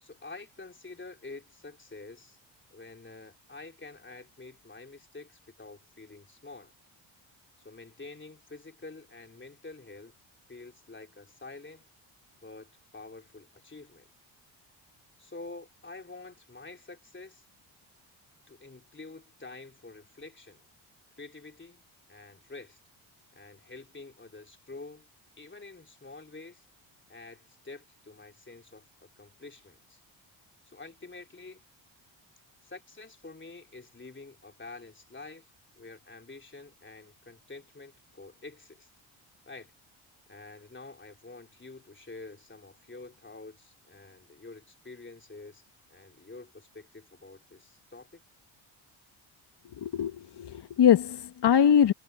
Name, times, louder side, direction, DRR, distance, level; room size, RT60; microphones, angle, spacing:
voice 1, 0.0-2.4 2.7-6.7 7.6-10.1 10.5-11.9 12.4-14.1 15.2-17.4 18.5-20.6 21.2-21.8 22.1-22.8 23.3-25.1 25.4-26.7 27.1-28.9 29.2-30.0 30.7-31.6 32.6-38.9 39.5-39.7 40.3-45.6 45.9-48.2, left 3 dB, 25° left, 3.6 m, -47 dB
voice 2, 49.8-51.9, left 9 dB, 55° left, 1.2 m, -22 dB
supercardioid pair, 60°, 50 cm